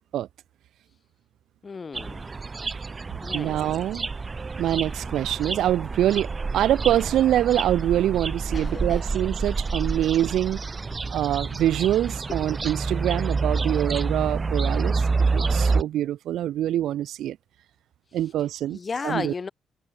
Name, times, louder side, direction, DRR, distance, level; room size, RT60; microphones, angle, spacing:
voice 1, 1.6-2.4 3.2-3.6 8.5-9.1 12.3-12.4 18.7-19.5, left 5 dB, 35° left, 1.5 m, -34 dB
sound 1, 1.9-15.8, right 4 dB, 30° right, 0.8 m, -28 dB
voice 2, 3.3-4.1 4.6-6.3 6.5-10.6 11.1-17.4 18.1-18.8 19.0-19.3, right 12 dB, 80° right, 1.5 m, -25 dB
cardioid pair, 90°, 0 cm